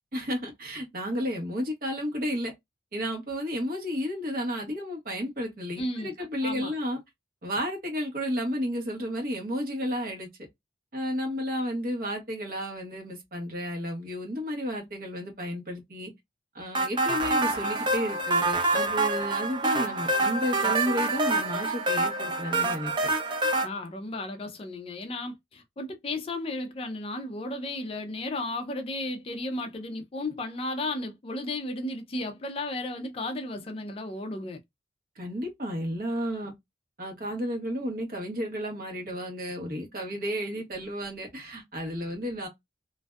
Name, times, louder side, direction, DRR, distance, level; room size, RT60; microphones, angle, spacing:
voice 1, 0.1-2.5 2.9-7.0 7.4-10.3 10.9-16.1 16.5-23.1 35.2-36.5 37.0-42.5, equal, 50° right, 1.0 m, -32 dB
voice 2, 5.8-6.1 6.4-6.7 23.6-34.6, left 2 dB, 30° left, 0.4 m, -34 dB
sound 1, 16.7-23.7, right 2 dB, 25° right, 0.5 m, -26 dB
2.5 x 2.2 x 2.2 m
head